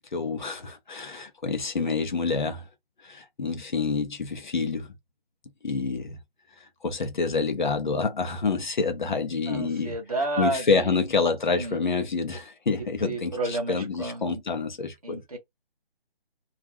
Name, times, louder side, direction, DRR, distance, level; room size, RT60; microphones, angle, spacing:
voice 1, 0.1-2.7 3.0-4.9 5.6-6.2 6.6-9.9 10.4-15.2, left 4 dB, 50° left, 0.6 m, -27 dB
voice 2, 9.5-11.0 11.6-11.8 12.8-14.4 15.0-15.4, right 2 dB, 40° right, 0.7 m, -31 dB
2.4 x 2.1 x 3.0 m
hypercardioid pair, 175°, 31 cm